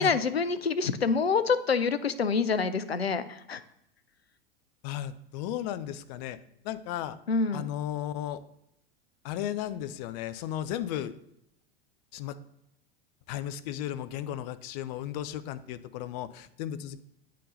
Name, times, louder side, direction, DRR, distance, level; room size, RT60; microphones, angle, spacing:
voice 1, 0.0-3.2 3.5-3.6 7.3-7.7, left 5 dB, 90° left, 12 dB, 0.5 m, -26 dB
voice 2, 4.8-6.4 6.6-7.2 7.5-8.4 9.2-11.1 12.1-12.3 13.3-17.0, left 11 dB, 45° left, 13 dB, 0.5 m, -35 dB
8.4 x 3.8 x 4.0 m, 0.79 s
figure-of-eight pair, 85°, 30 cm